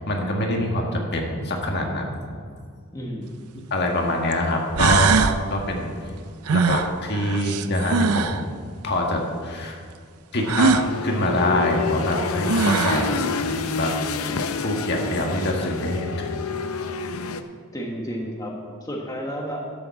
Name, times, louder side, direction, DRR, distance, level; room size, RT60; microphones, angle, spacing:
voice 1, 0.0-2.2 3.7-5.9 6.5-8.5 8.8-9.8 10.3-13.2 13.8-13.9 14.3-16.3, left 1 dB, 50° left, 1 dB, 1.7 m, -25 dB
voice 2, 2.9-3.4 12.9-13.2 17.7-18.5 18.8-19.6, equal, 15° left, -1 dB, 1.3 m, -32 dB
sound 1, 3.3-3.4 4.3-4.4 4.8-5.4 6.5-8.4 10.5-10.9 12.1-12.2 12.5-13.1, right 5 dB, 80° right, 0.5 m, -21 dB
sound 2, 10.3-17.4, left 4 dB, 70° left, 0.6 m, -28 dB
12.0 x 7.0 x 7.0 m, 2.1 s
head